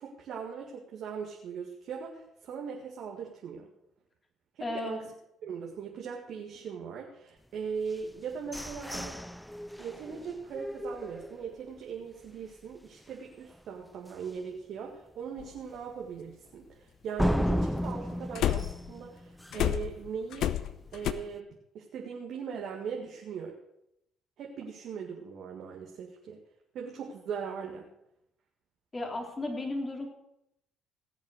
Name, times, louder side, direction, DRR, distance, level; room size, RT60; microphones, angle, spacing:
voice 1, 0.0-3.7 4.6-5.0 5.4-9.3 9.8-20.5 20.9-21.5 21.7-23.5 24.4-26.4 26.7-27.9, right 6 dB, 65° right, 0 dB, 1.9 m, -39 dB
voice 2, 4.6-5.1 28.9-30.1, left 2 dB, 30° left, 2 dB, 3.7 m, -34 dB
sound 1, 7.9-11.8 12.2-12.3 12.7-13.1 13.5-13.6 14.1-14.2 17.2-19.8, equal, ahead, 0.4 m, -34 dB
sound 2, 15.4-15.5 18.4-18.9 19.5-21.1, left 11 dB, 65° left, 0.7 m, -29 dB
17.5 x 7.5 x 6.5 m, 0.81 s
hypercardioid pair, 55°, 0 cm